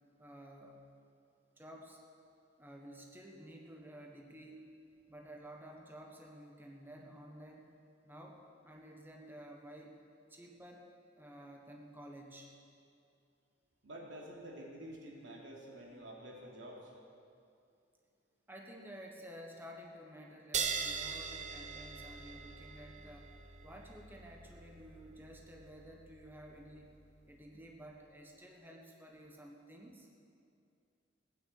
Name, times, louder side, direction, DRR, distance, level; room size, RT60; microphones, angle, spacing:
voice 1, 0.2-0.8 1.6-2.0 2.6-4.7 5.1-7.7 8.0-10.0 10.3-12.5 18.5-23.3 23.6-26.9 27.3-30.1, equal, 10° right, 0 dB, 1.4 m, -52 dB
voice 2, 13.8-16.9, equal, 85° right, -2 dB, 3.2 m, -49 dB
sound 1, 20.5-27.5, right 6 dB, 40° right, 0.8 m, -42 dB
16.5 x 9.5 x 8.6 m, 2.5 s
head